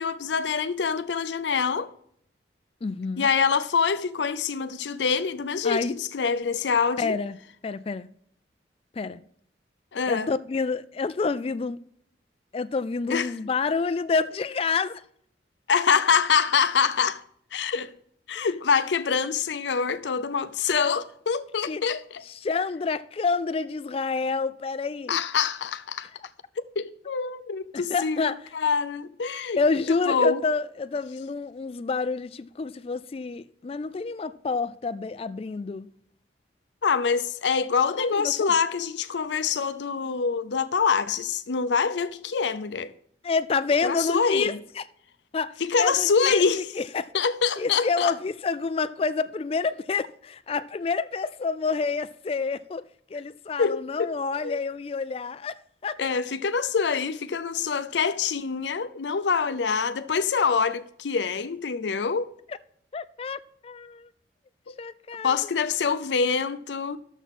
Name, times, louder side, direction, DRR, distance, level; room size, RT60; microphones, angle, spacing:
voice 1, 0.0-1.9 3.2-7.2 9.9-10.3 13.1-13.3 15.7-17.2 17.5-17.9 18.3-22.2 25.1-26.1 26.8-29.6 29.9-30.4 36.8-42.9 43.8-44.6 45.6-46.7 47.1-48.1 53.6-54.1 54.4-54.6 56.0-62.3 64.7-64.8 65.2-67.0, left 5 dB, 85° left, 0.5 m, -25 dB
voice 2, 2.8-3.3 5.6-5.9 7.0-7.4 7.6-8.1 9.0-9.2 10.1-11.8 12.5-15.0 18.4-18.5 21.7-21.8 22.3-25.2 27.7-28.4 29.6-35.9 37.9-38.5 43.2-44.8 45.3-47.1 47.6-52.8 53.1-56.2 62.9-64.1 64.8-65.4, left 4 dB, 35° left, 0.3 m, -28 dB
12.0 x 7.1 x 4.2 m
head